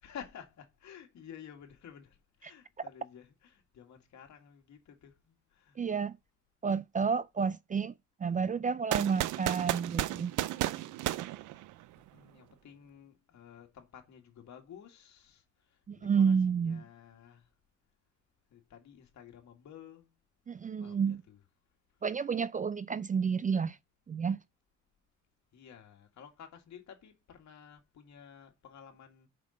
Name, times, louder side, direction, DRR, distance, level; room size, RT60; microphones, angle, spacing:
voice 1, 0.0-5.8 11.6-11.7 12.1-17.5 18.5-20.1 20.8-21.5 25.5-29.3, left 8 dB, 65° left, 2.2 m, -52 dB
voice 2, 5.8-6.1 6.6-7.9 8.2-10.3 15.9-16.8 20.5-21.2 22.0-23.8 24.1-24.4, right 6 dB, 25° right, 0.4 m, -30 dB
sound 1, 8.9-12.1, right 15 dB, 90° right, 0.5 m, -33 dB
5.6 x 4.9 x 6.5 m
cardioid pair, 90°, 30 cm